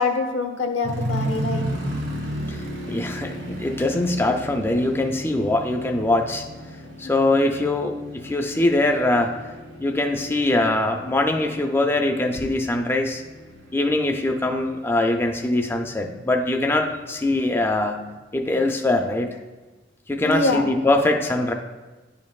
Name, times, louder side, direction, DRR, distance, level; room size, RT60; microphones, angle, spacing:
voice 1, 0.0-1.6 20.2-20.7, left 3 dB, 90° left, 4 dB, 0.8 m, -24 dB
sound 1, 0.8-17.9 18.5-18.6 19.1-19.4, right 1 dB, 75° right, 1.7 m, -35 dB
voice 2, 2.9-6.4 7.0-9.3 9.8-13.2 13.7-18.0 18.3-19.3 20.1-21.5, left 2 dB, 10° left, 3 dB, 0.3 m, -22 dB
9.9 x 5.2 x 2.3 m, 1.2 s
head